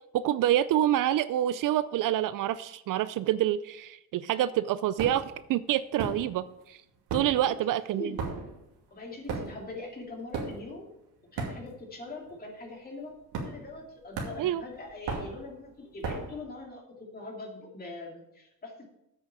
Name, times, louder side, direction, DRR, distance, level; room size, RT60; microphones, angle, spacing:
voice 1, 0.1-6.8 7.1-8.2 14.4-14.6, right 12 dB, 60° right, 15 dB, 0.5 m, -27 dB
sound 1, 5.0-5.4 6.0-6.6 6.9-12.0 12.3-12.6 13.3-13.8 14.1-16.4, right 4 dB, 85° right, 2.5 m, -36 dB
voice 2, 8.9-10.9 11.3-18.9, left 2 dB, 25° left, 0 dB, 2.6 m, -42 dB
8.4 x 6.2 x 6.7 m, 0.85 s
cardioid pair, 125°, 36 cm